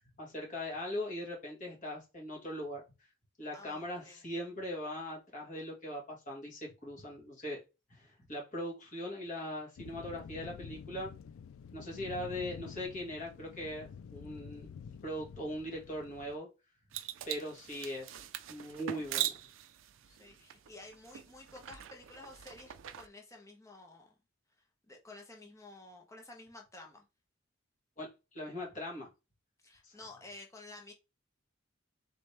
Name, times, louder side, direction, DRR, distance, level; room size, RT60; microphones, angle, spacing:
voice 1, 0.2-2.8 3.4-7.6 7.9-11.1 11.7-16.5 17.3-18.2 18.5-19.3 28.0-29.1 29.8-30.0, equal, 40° left, 1.8 m, -40 dB
voice 2, 3.5-4.3 20.0-24.1 24.9-27.0 29.6-30.9, left 2 dB, 15° left, 0.9 m, -52 dB
sound 1, 9.8-16.4, left 7 dB, 85° left, 0.3 m, -49 dB
sound 2, 16.9-23.1, right 12 dB, 70° right, 0.4 m, -41 dB
4.3 x 3.3 x 3.3 m
head